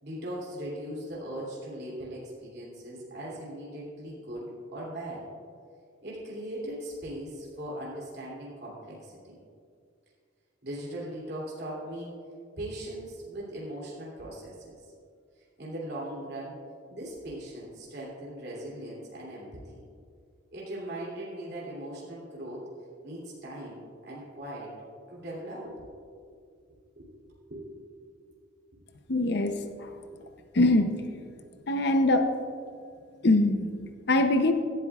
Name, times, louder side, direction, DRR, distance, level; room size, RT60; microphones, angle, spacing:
voice 1, 0.0-5.3 6.0-9.4 10.6-12.1 12.6-14.9 15.4-16.6 16.9-19.8 20.5-22.7 23.0-24.7 25.1-26.1 27.0-27.1 27.5-27.7 30.1-30.2, right 1 dB, 55° right, -6 dB, 2.9 m, -39 dB
voice 2, 29.1-29.9 30.5-31.0 31.7-32.3 33.2-34.5, left 2 dB, 55° left, 6 dB, 0.7 m, -23 dB
17.0 x 12.0 x 2.4 m, 2.2 s
head